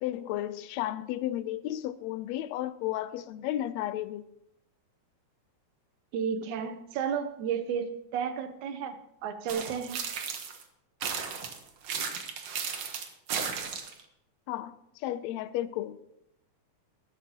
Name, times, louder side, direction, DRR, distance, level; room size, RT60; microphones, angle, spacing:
voice 1, 0.0-4.3 14.5-16.0, left 13 dB, 80° left, 1.7 m, -33 dB
voice 2, 6.1-9.0 9.2-10.0, right 7 dB, 80° right, 2.4 m, -32 dB
sound 1, 9.5-10.6 11.0-14.0, right 6 dB, 60° right, 2.2 m, -35 dB
20.0 x 11.0 x 3.0 m
omnidirectional pair, 3.5 m